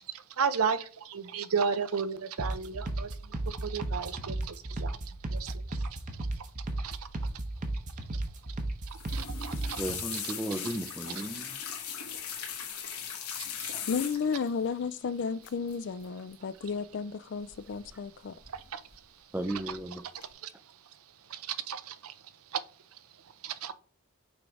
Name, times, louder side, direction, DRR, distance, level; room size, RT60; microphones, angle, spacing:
voice 1, 0.4-0.8 1.1-3.1 3.5-4.4 4.8-5.0 5.3-5.5 9.1-9.8 10.1-10.2 13.6-13.7 18.7-18.8 19.7-19.8 21.5-21.8 23.4-23.7, right 6 dB, 75° right, 0.6 m, -32 dB
sound 1, 2.4-10.0, right 1 dB, 35° right, 1.0 m, -35 dB
sound 2, 8.9-14.5 15.4-15.7 16.0-16.3 17.5-18.1 18.4-19.0 19.4-19.8 20.2-20.3, left 8 dB, 85° left, 1.5 m, -39 dB
voice 2, 9.8-11.6 19.3-20.0, right 1 dB, 10° right, 0.5 m, -35 dB
voice 3, 13.9-18.4, left 5 dB, 55° left, 0.4 m, -33 dB
6.2 x 3.3 x 4.8 m
head